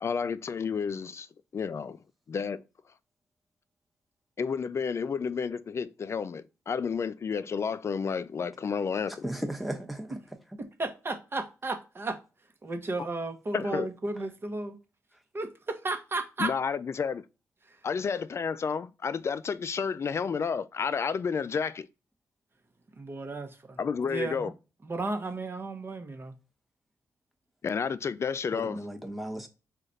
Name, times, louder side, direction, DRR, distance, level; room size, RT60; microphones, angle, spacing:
voice 1, 0.0-1.3 1.5-2.0 2.3-2.6 4.4-9.3 13.5-13.9 16.4-17.2 17.8-21.9 23.8-24.5 27.6-28.8, left 6 dB, 45° left, 0.3 m, -31 dB
voice 2, 9.2-10.2 28.5-29.5, right 1 dB, ahead, 1.0 m, -35 dB
voice 3, 10.6-12.2 12.6-14.8 15.3-16.5 17.7-17.8 23.0-23.8 24.0-24.5 24.8-26.3, right 2 dB, 40° right, 0.9 m, -34 dB
3.1 x 2.4 x 3.9 m
cardioid pair, 60°, 6 cm